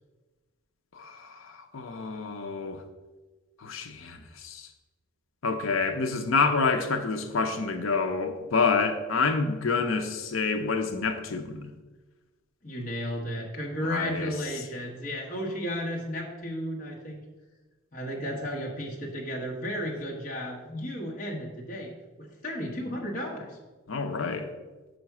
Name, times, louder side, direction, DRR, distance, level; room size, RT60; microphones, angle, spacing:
voice 1, 0.9-2.8 3.6-4.7 5.4-11.7 13.8-14.3 23.9-24.5, left 4 dB, 75° left, 6 dB, 0.6 m, -28 dB
voice 2, 12.6-17.2 17.9-21.9 22.2-23.6, equal, 40° left, -1 dB, 1.1 m, -34 dB
5.6 x 5.1 x 5.9 m, 1.2 s
head